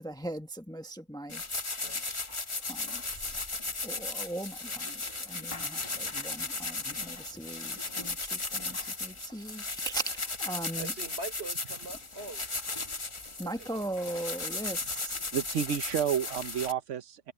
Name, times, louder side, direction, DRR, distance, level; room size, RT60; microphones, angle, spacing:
voice 1, 0.0-1.4 2.7-3.4 3.8-10.9 13.4-15.2, right 2 dB, 5° left, 1.2 m, -39 dB
sound 1, 1.3-16.7, left 3 dB, 25° left, 1.2 m, -36 dB
voice 2, 10.8-12.9 13.4-13.9, right 2 dB, 60° right, 4.2 m, -43 dB
voice 3, 15.3-17.3, right 9 dB, 90° right, 1.2 m, -30 dB
omnidirectional pair, 1.2 m